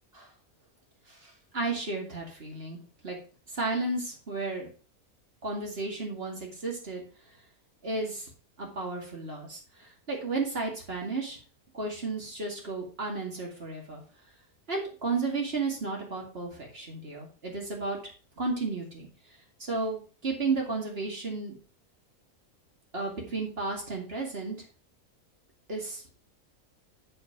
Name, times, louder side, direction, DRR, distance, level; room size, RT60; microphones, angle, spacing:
voice 1, 1.1-3.2 3.5-4.7 5.4-7.0 7.8-8.3 8.6-11.4 11.7-14.0 14.7-18.0 18.4-19.1 19.6-21.6 22.9-24.6 25.7-26.0, right 3 dB, 40° right, -1 dB, 2.5 m, -33 dB
7.0 x 5.6 x 4.8 m, 0.39 s
omnidirectional pair, 1.5 m